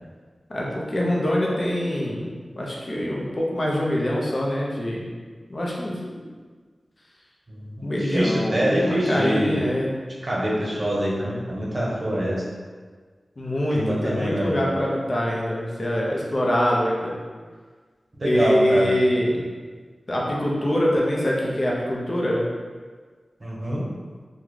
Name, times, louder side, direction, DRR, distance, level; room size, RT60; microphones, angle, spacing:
voice 1, 0.5-2.3 2.6-5.0 5.5-6.2 7.8-9.9 13.4-17.2 18.2-19.4 20.1-22.4, equal, 45° left, -4 dB, 0.6 m, -24 dB
voice 2, 7.5-9.7 10.2-12.4 13.7-14.8 18.2-19.0 23.4-23.9, equal, 40° right, -5 dB, 0.9 m, -25 dB
3.6 x 2.2 x 3.2 m, 1.5 s
wide cardioid pair, 65°, 0 cm